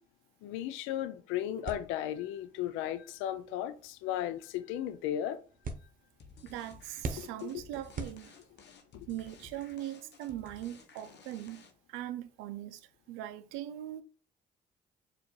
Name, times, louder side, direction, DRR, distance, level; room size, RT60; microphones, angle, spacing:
voice 1, 0.4-5.4 7.2-7.5 8.9-9.1, left 11 dB, 80° left, 0.4 m, -35 dB
sound 1, 1.6-8.8, right 3 dB, 45° right, 0.9 m, -46 dB
sound 2, 6.2-12.0, left 5 dB, 60° left, 1.0 m, -55 dB
voice 2, 6.4-8.4 9.1-11.6 11.9-14.0, right 13 dB, 80° right, 0.5 m, -41 dB
4.5 x 2.6 x 4.4 m
hypercardioid pair, 50°, 20 cm